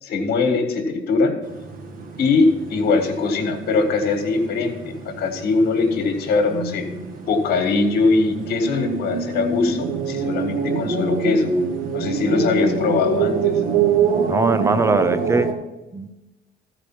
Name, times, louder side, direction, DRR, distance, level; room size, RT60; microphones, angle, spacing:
voice 1, 0.0-1.4 2.2-6.9 7.3-11.5 11.9-13.5, left 3 dB, 70° left, 5 dB, 1.7 m, -21 dB
sound 1, 1.4-15.5, right 5 dB, 55° right, 1.5 m, -25 dB
voice 2, 14.3-15.5 15.9-16.1, right 3 dB, 15° right, 12 dB, 0.6 m, -20 dB
14.0 x 5.0 x 6.0 m, 1.0 s
cardioid pair, 110°, 17 cm